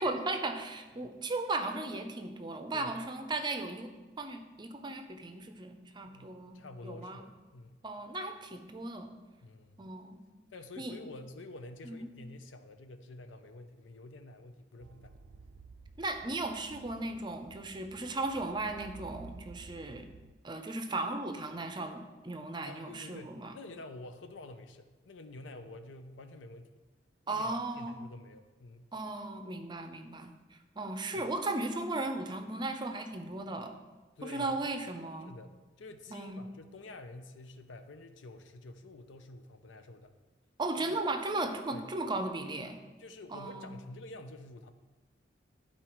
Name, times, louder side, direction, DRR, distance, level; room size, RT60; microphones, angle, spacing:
voice 1, 0.0-7.2 7.8-9.1 9.8-10.2 10.8-11.0 11.8-12.1 16.0-20.1 20.4-23.6 27.3-28.1 28.9-33.7 34.2-35.3 36.1-36.5 40.6-42.8 43.3-43.7, right 2 dB, 25° right, 7 dB, 0.5 m, -36 dB
voice 2, 6.1-7.8 9.4-9.8 10.5-15.2 22.6-26.7 27.3-28.9 31.1-31.3 34.2-34.7 35.3-40.1 40.9-41.0 41.7-41.9 43.0-44.7, left 2 dB, 85° left, 8 dB, 0.7 m, -49 dB
sound 1, 14.8-20.3, right 4 dB, 80° right, 0.4 m, -53 dB
11.5 x 4.3 x 4.5 m, 1.2 s
head